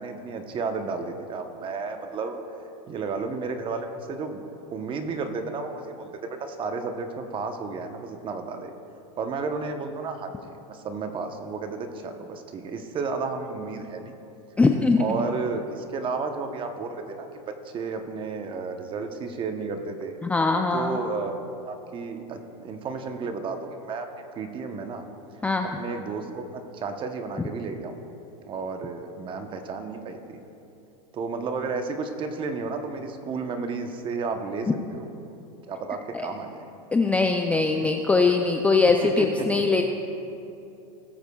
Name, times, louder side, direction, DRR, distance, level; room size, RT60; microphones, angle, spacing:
voice 1, 0.0-2.4 2.9-4.4 4.7-8.7 9.2-14.1 15.0-20.2 20.7-24.1 24.4-25.0 25.8-28.0 28.5-30.4 31.1-35.1 35.7-36.7 37.7-37.9 39.0-39.6, right 4 dB, 25° right, 6 dB, 0.9 m, -32 dB
voice 2, 14.6-15.0 20.2-21.0 25.4-25.7 36.1-36.3 36.9-39.8, left 3 dB, 5° left, 3 dB, 0.3 m, -21 dB
19.0 x 8.0 x 2.3 m, 2.8 s
supercardioid pair, 130°, 19 cm